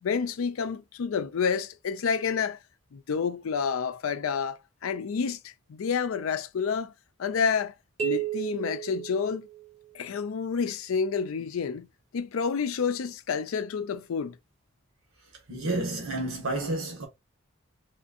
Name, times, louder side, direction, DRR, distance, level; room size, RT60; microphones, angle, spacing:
voice 1, 0.0-2.6 2.9-6.9 7.2-7.7 8.0-9.5 9.9-11.9 12.1-14.4, left 6 dB, 85° left, 0.4 m, -29 dB
sound 1, 8.0-9.9, right 11 dB, 30° right, 0.8 m, -33 dB
voice 2, 15.5-17.1, right 2 dB, 85° right, 1.4 m, -30 dB
4.2 x 2.6 x 2.4 m
head